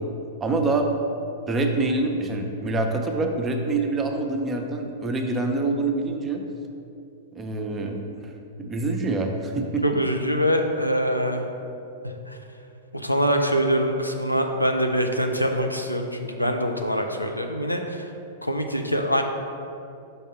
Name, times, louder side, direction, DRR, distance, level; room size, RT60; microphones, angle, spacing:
voice 1, 0.4-0.9 1.5-6.4 7.3-8.3 8.6-10.0, right 2 dB, 20° right, 3 dB, 0.6 m, -26 dB
voice 2, 9.8-11.5 12.3-12.4 12.9-18.1 18.4-19.2, equal, 90° left, 4 dB, 0.5 m, -24 dB
5.5 x 3.6 x 5.6 m, 2.7 s
figure-of-eight pair, 100°, 0 cm